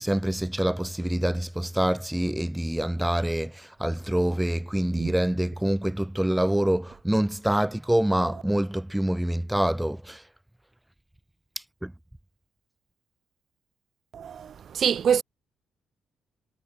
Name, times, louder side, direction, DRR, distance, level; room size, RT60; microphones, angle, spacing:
voice 1, 0.0-10.2 11.8-11.9, right 1 dB, 5° right, 4.5 m, -26 dB
voice 2, 14.1-15.2, right 8 dB, 55° right, 3.3 m, -25 dB
cardioid pair, 90°, 0 cm